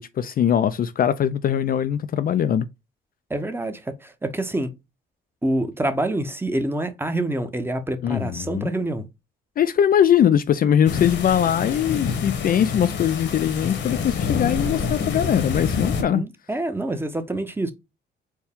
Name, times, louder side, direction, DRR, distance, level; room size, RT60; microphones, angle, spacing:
voice 1, 0.0-2.7 8.0-8.7 9.6-16.2, left 9 dB, 45° left, 0.4 m, -21 dB
voice 2, 3.3-4.7 5.4-9.0 16.0-17.7, right 1 dB, 10° right, 0.8 m, -26 dB
sound 1, 10.9-16.0, left 6 dB, 65° left, 1.1 m, -27 dB
4.4 x 2.2 x 3.5 m
cardioid pair, 90°, 20 cm